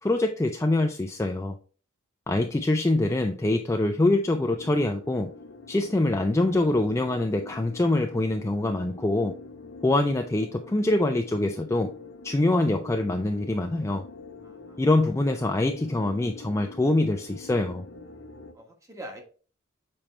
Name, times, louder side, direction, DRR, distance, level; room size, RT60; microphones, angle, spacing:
voice 1, 0.0-1.6 2.3-5.3 5.7-9.3 9.8-11.9 12.2-14.1 14.8-17.8, left 2 dB, 15° left, 4 dB, 0.3 m, -24 dB
sound 1, 4.5-18.5, left 3 dB, 60° left, 1.0 m, -45 dB
voice 2, 14.4-14.8 15.2-15.6 18.5-19.2, right 1 dB, 15° right, 2 dB, 1.2 m, -44 dB
7.0 x 4.3 x 3.2 m, 0.39 s
head